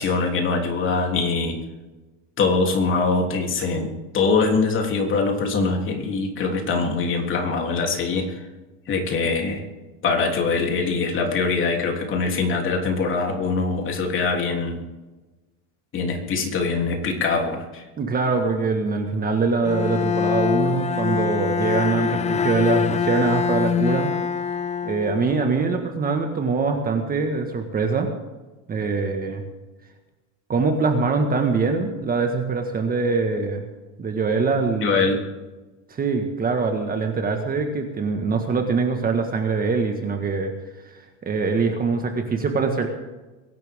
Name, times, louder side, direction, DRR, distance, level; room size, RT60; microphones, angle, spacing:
voice 1, 0.0-1.6 2.4-8.4 8.9-9.6 10.0-14.8 15.9-17.8 34.8-35.2, left 4 dB, 35° left, 2 dB, 3.3 m, -23 dB
voice 2, 18.0-24.1 24.8-28.1 28.7-29.4 30.5-33.7 34.0-35.0 35.9-40.5 41.2-42.9, right 4 dB, 25° right, 5 dB, 1.7 m, -23 dB
Bowed string instrument, 19.6-25.6, left 7 dB, 20° left, 0.6 m, -24 dB
23.0 x 12.0 x 3.7 m, 1.2 s
supercardioid pair, 135°, 36 cm